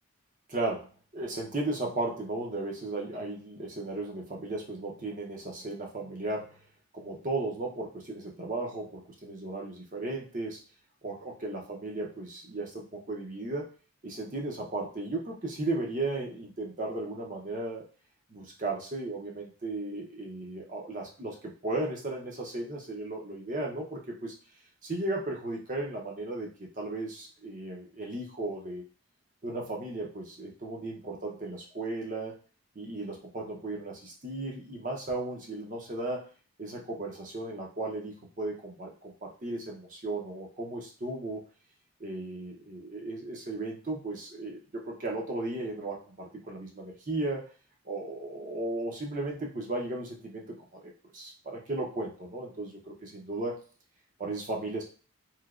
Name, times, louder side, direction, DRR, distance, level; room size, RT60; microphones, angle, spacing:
voice 1, 0.5-6.6 6.9-10.6 11.0-13.7 14.0-17.9 18.3-24.3 24.8-28.8 29.4-32.3 32.8-36.3 36.6-41.4 42.0-47.4 47.8-53.6 54.2-54.8, right 2 dB, 35° right, -1 dB, 0.6 m, -35 dB
3.2 x 2.8 x 2.4 m, 0.38 s
head